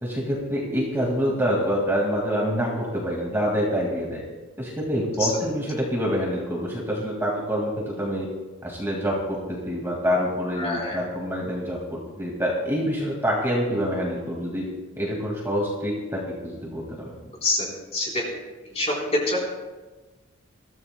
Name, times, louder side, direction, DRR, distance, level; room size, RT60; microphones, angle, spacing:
voice 1, 0.0-4.2 4.6-8.3 8.6-14.6 15.0-17.1, equal, 10° right, -3 dB, 2.0 m, -26 dB
voice 2, 10.6-11.0 17.4-17.7 17.9-18.2 18.7-18.9 19.3-19.4, left 2 dB, 30° left, -3 dB, 3.8 m, -25 dB
22.5 x 14.0 x 2.2 m, 1.2 s
head